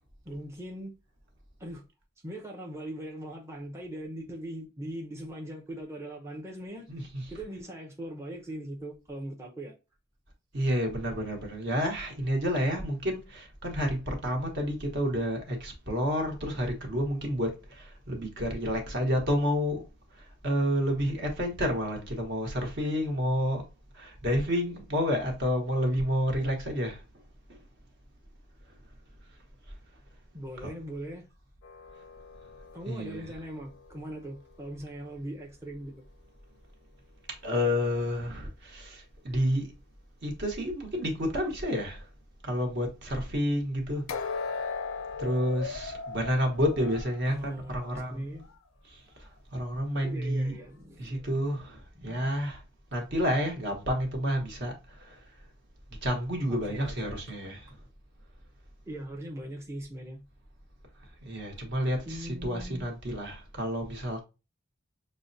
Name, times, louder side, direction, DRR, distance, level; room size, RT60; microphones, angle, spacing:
voice 1, 0.2-1.0 1.6-1.8 2.2-9.7 30.3-31.3 32.7-35.9 47.3-48.5 50.0-51.7 51.9-52.5 56.5-57.2 58.9-60.2 62.1-62.9, right 1 dB, 15° right, 0.6 m, -40 dB
voice 2, 6.9-7.2 10.5-19.8 20.1-23.6 23.9-27.0 27.5-27.6 30.6-30.7 32.8-33.3 37.4-39.7 40.2-42.1 42.4-44.0 45.2-48.2 48.8-50.6 51.0-52.6 52.9-55.3 56.0-57.8 61.2-64.2, equal, 55° right, 1.1 m, -30 dB
sound 1, 31.6-34.8 44.1-48.0 48.4-48.6 49.2-49.3, left 4 dB, 75° left, 0.5 m, -39 dB
6.0 x 2.1 x 2.6 m
head